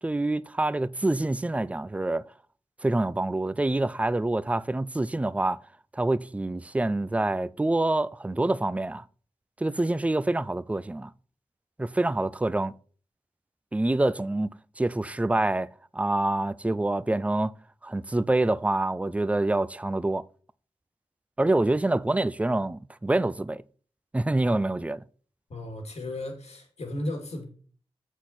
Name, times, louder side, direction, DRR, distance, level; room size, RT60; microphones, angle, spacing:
voice 1, 0.0-2.3 2.8-5.6 5.9-9.0 9.6-11.1 11.8-12.7 13.7-17.5 17.8-20.2 21.4-23.6 24.1-25.0, right 2 dB, 10° right, 0.3 m, -26 dB
voice 2, 25.5-27.4, left 1 dB, 85° left, 2.4 m, -35 dB
7.9 x 6.3 x 4.1 m
wide cardioid pair, 95°, 11 cm